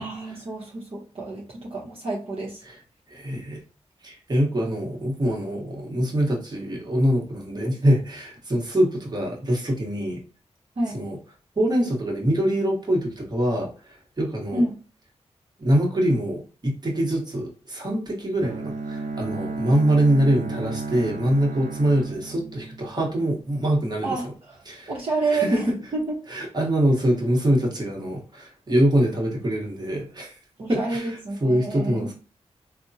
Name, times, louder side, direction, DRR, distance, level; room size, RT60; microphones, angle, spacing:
voice 1, 0.0-2.6 10.8-11.0 14.5-14.8 24.0-24.6 24.9-25.6 25.9-26.1 30.6-32.1, right 2 dB, 55° right, -5 dB, 0.9 m, -28 dB
voice 2, 3.1-3.6 4.0-10.2 10.9-11.2 11.6-14.6 15.6-24.3 24.7-24.9 25.3-25.8 26.3-30.3 30.7-32.1, right 1 dB, 35° right, -1 dB, 1.2 m, -24 dB
Bowed string instrument, 18.4-23.4, right 3 dB, 85° right, 0.6 m, -33 dB
3.5 x 2.1 x 2.7 m, 0.36 s
cardioid pair, 70°, 12 cm